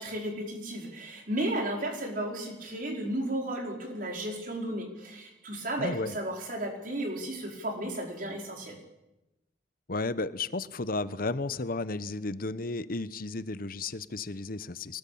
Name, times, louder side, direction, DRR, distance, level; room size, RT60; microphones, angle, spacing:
voice 1, 0.0-8.7, right 1 dB, 50° right, 2 dB, 5.1 m, -34 dB
voice 2, 5.8-6.1 9.9-15.0, left 3 dB, 50° left, 15 dB, 0.9 m, -33 dB
23.5 x 19.0 x 8.6 m, 0.97 s
head